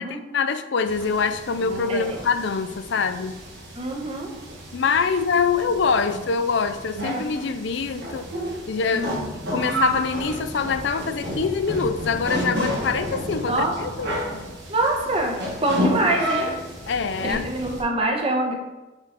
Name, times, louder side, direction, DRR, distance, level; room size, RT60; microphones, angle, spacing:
voice 1, 0.0-3.4 4.7-8.3 8.7-9.1 9.5-14.1 16.9-17.4, left 5 dB, 65° left, 11 dB, 0.4 m, -24 dB
sound 1, 0.9-17.8, equal, 60° right, 1.5 m, -31 dB
voice 2, 3.7-4.3 6.1-6.2 8.9-9.3 13.5-13.7 14.7-16.5 17.2-18.5, right 2 dB, 30° right, 1 dB, 1.0 m, -25 dB
7.0 x 4.0 x 4.1 m, 1.1 s
head